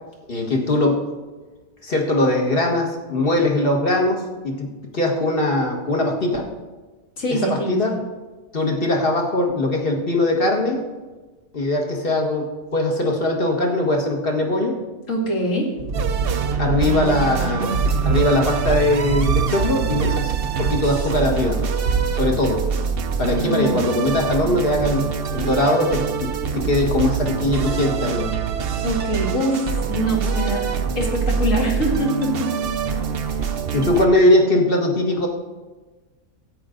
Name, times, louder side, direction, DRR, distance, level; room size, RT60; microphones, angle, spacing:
voice 1, 0.3-1.0 1.8-6.5 7.3-8.0 8.5-10.8 11.5-14.8 16.6-17.8 18.0-20.3 20.6-21.6 22.1-22.6 23.2-28.3 33.7-35.3, left 1 dB, 40° left, 0 dB, 1.8 m, -21 dB
voice 2, 7.2-8.0 15.1-15.7 23.5-23.8 28.8-32.7 33.2-33.4, equal, 60° left, -2 dB, 2.6 m, -24 dB
sound 1, 15.8-23.0, right 5 dB, 75° right, 1.4 m, -26 dB
sound 2, 15.9-34.1, right 6 dB, 55° right, 0.7 m, -25 dB
12.5 x 8.8 x 3.9 m, 1.3 s
omnidirectional pair, 1.5 m